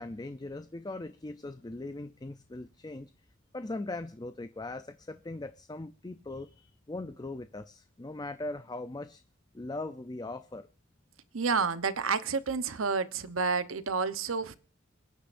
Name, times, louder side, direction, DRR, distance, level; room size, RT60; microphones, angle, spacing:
voice 1, 0.0-3.1 3.5-9.2 9.5-10.7, left 2 dB, 20° left, 0.5 m, -40 dB
voice 2, 11.3-14.6, right 5 dB, 85° right, 1.0 m, -30 dB
26.5 x 10.0 x 2.6 m
head